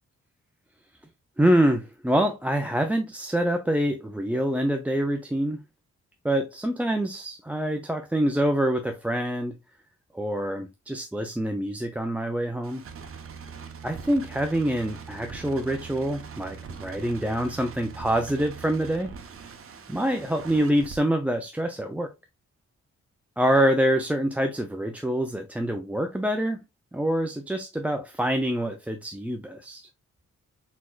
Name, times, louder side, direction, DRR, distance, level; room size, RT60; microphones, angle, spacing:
voice 1, 1.4-5.6 6.2-9.5 10.1-12.8 13.8-19.1 19.9-22.1 23.4-26.6 26.9-29.9, right 1 dB, 5° right, 0.4 m, -26 dB
sound 1, 12.6-21.0, right 6 dB, 50° right, 0.8 m, -42 dB
4.3 x 4.2 x 2.3 m
wide cardioid pair, 120°, 29 cm